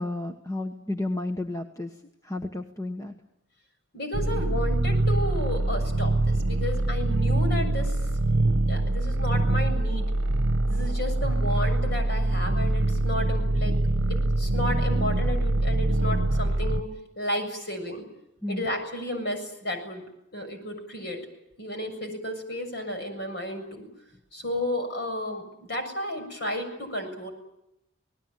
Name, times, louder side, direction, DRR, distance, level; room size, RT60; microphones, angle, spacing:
voice 1, 0.0-1.9 2.2-3.1 18.4-18.6, left 2 dB, 15° left, 5 dB, 1.2 m, -32 dB
voice 2, 3.9-8.0 8.6-10.1 10.7-13.8 14.1-16.9 17.2-18.0 18.5-20.0 20.3-21.2 21.6-23.9 24.3-27.3, left 1 dB, 50° left, 6 dB, 7.1 m, -32 dB
sound 1, 4.1-16.8, right 2 dB, 65° right, 1.1 m, -24 dB
28.0 x 19.5 x 9.3 m, 0.82 s
head